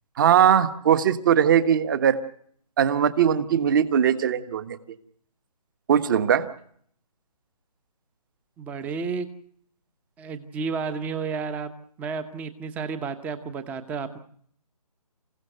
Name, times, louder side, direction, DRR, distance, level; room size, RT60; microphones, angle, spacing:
voice 1, 0.2-2.2 2.8-4.8 5.9-6.5, right 9 dB, 30° right, 11 dB, 1.4 m, -20 dB
voice 2, 8.6-9.3 10.2-11.7 12.0-14.2, right 5 dB, 5° right, 12 dB, 0.9 m, -31 dB
29.0 x 16.5 x 6.6 m, 0.64 s
figure-of-eight pair, 155°, 20 cm